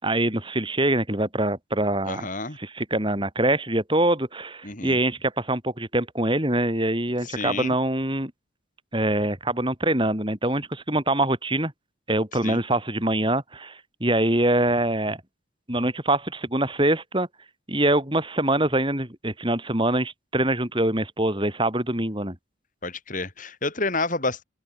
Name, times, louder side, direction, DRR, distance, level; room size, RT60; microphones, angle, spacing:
voice 1, 0.0-2.3 2.6-8.3 8.9-11.7 12.1-15.2 15.7-17.3 17.7-22.4, right 1 dB, 25° right, 5.0 m, -24 dB
voice 2, 2.0-2.6 4.6-5.0 7.2-7.8 12.4-12.6 22.8-24.4, left 3 dB, 40° left, 6.9 m, -29 dB
open air
head